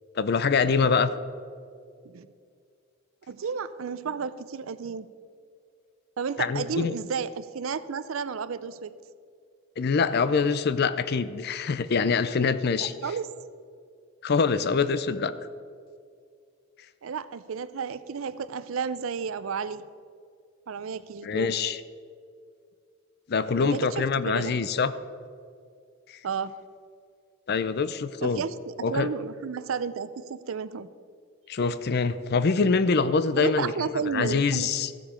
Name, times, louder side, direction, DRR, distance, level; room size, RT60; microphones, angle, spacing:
voice 1, 0.1-1.1 6.4-6.9 9.8-12.9 14.2-15.3 21.2-21.8 23.3-24.9 27.5-28.4 28.8-29.1 31.5-34.9, left 5 dB, 50° left, 14 dB, 0.5 m, -25 dB
voice 2, 3.3-5.1 6.2-8.9 12.8-13.3 17.0-19.8 20.7-21.5 23.6-24.5 26.2-26.5 28.2-30.9 33.4-34.7, right 6 dB, 75° right, 15 dB, 0.5 m, -32 dB
14.0 x 7.4 x 5.0 m, 2.3 s
head